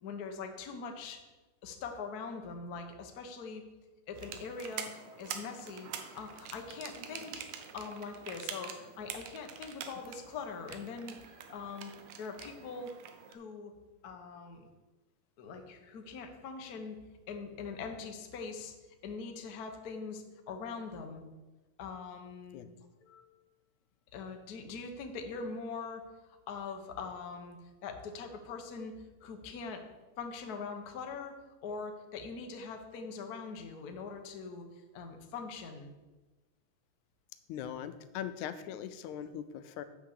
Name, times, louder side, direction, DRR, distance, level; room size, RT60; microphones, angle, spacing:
voice 1, 0.0-1.2 1.6-3.7 4.1-5.9 6.1-7.4 7.7-11.2 11.5-11.9 12.2-12.9 13.3-13.7 14.0-14.7 15.4-17.0 17.3-18.8 19.0-21.2 21.8-22.7 23.0-23.2 24.1-27.6 27.8-29.8 30.2-34.6 34.9-35.9, left 4 dB, 75° left, 4 dB, 0.8 m, -42 dB
sound 1, 4.2-13.3, right 8 dB, 85° right, 2.2 m, -46 dB
voice 2, 37.5-39.8, left 9 dB, 90° left, 12 dB, 2.0 m, -40 dB
8.1 x 5.9 x 6.6 m, 1.2 s
omnidirectional pair, 3.3 m